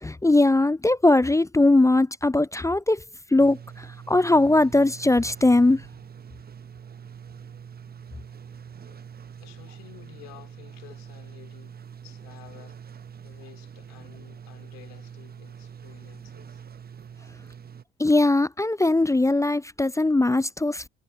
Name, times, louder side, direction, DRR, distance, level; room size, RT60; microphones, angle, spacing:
voice 1, 0.0-3.0 3.3-5.9 18.0-20.9, left 2 dB, 10° left, 0.5 m, -20 dB
sound 1, 3.4-17.8, right 7 dB, 30° right, 0.8 m, -44 dB
voice 2, 8.4-9.0 9.4-11.8 12.0-12.8 13.2-16.6, left 29 dB, 80° left, 3.2 m, -51 dB
hypercardioid pair, 45°, 31 cm